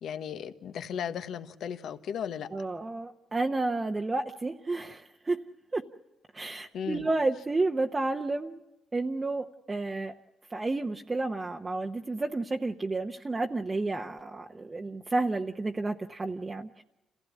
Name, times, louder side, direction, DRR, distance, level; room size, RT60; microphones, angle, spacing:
voice 1, 0.0-2.5 6.7-7.1, left 8 dB, 70° left, 10 dB, 1.2 m, -36 dB
voice 2, 2.5-5.4 5.7-5.8 6.3-8.6 8.9-10.1 10.5-16.8, right 2 dB, 25° right, 3 dB, 0.9 m, -31 dB
27.5 x 15.5 x 9.4 m, 0.98 s
cardioid pair, 90°, 0 cm